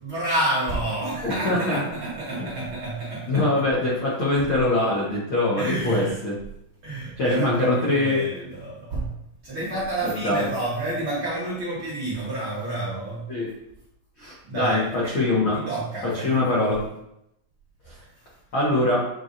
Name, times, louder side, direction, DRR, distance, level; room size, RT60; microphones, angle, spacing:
voice 1, 0.0-3.8 5.6-6.1 6.8-9.1 9.4-13.2 14.5-16.6, right 2 dB, 55° right, -8 dB, 1.5 m, -29 dB
voice 2, 1.2-1.8 3.3-6.4 7.2-8.3 10.0-10.5 13.3-13.5 14.2-15.6 16.1-16.8 17.9-18.0 18.5-19.1, left 2 dB, 85° left, -6 dB, 1.1 m, -23 dB
8.5 x 4.5 x 2.6 m, 0.82 s
omnidirectional pair, 4.3 m